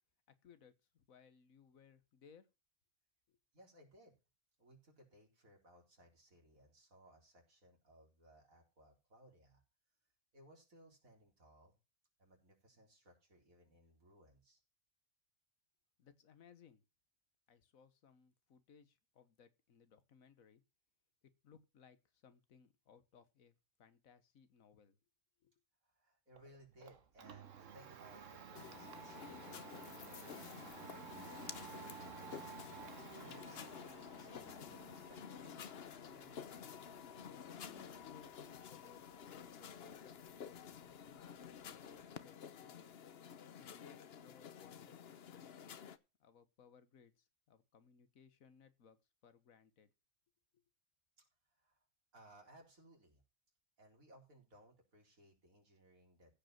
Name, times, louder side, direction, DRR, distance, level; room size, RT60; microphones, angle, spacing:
voice 1, 0.4-2.5 3.3-3.4 16.0-16.8 17.5-20.6 21.4-23.5 23.8-25.0 25.4-25.5 37.4-42.9 43.6-45.7 46.2-49.9 50.5-50.6, left 7 dB, 85° left, 1.6 m, -64 dB
voice 2, 3.5-4.2 4.6-9.6 10.3-11.7 12.2-14.6 25.8-29.4 29.9-32.4 32.9-35.5 51.4-51.9 52.1-53.2 53.8-56.4, right 1 dB, 90° right, 4.4 m, -64 dB
Domestic sounds home sounds, 26.4-42.2, right 7 dB, 65° right, 1.4 m, -55 dB
sound 1, 28.5-46.0, left 8 dB, 55° left, 1.0 m, -51 dB
15.5 x 5.2 x 5.8 m
omnidirectional pair, 1.4 m